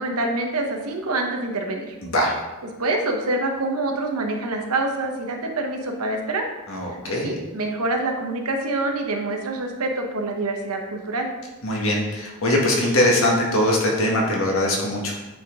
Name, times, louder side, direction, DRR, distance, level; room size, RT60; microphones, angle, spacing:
voice 1, 0.0-2.0 2.8-6.4 7.0-11.3, right 2 dB, 85° right, 2 dB, 1.2 m, -26 dB
voice 2, 2.0-2.3 6.7-7.4 11.6-15.1, left 1 dB, 65° left, -1 dB, 1.7 m, -21 dB
8.4 x 5.2 x 3.7 m, 1.1 s
head